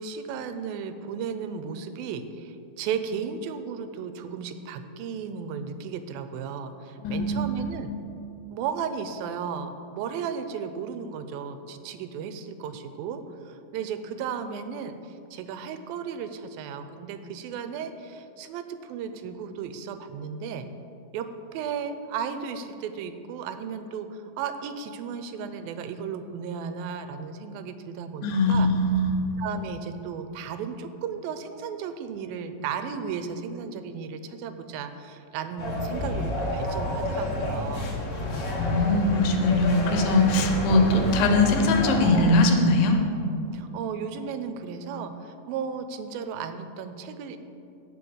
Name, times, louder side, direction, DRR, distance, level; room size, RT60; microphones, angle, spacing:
voice 1, 0.0-7.9 8.5-20.7 21.1-28.7 29.4-37.9 43.5-47.4, right 6 dB, 85° right, 9 dB, 2.4 m, -35 dB
voice 2, 7.0-7.8 28.2-29.2 38.5-43.0, left 2 dB, 75° left, 4 dB, 2.7 m, -21 dB
sound 1, 35.6-42.2, left 1 dB, 50° left, 2.1 m, -29 dB
16.0 x 5.3 x 6.2 m, 2.7 s
omnidirectional pair, 4.1 m